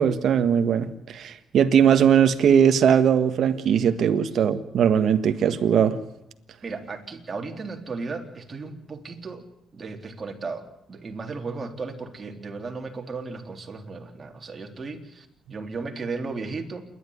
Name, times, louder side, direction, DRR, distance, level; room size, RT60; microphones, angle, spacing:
voice 1, 0.0-6.0, right 8 dB, 65° right, 10 dB, 1.6 m, -20 dB
voice 2, 6.6-9.4 9.7-16.8, right 4 dB, 35° right, 2 dB, 3.8 m, -35 dB
28.5 x 12.0 x 9.8 m, 0.84 s
cardioid pair, 90°, 0 cm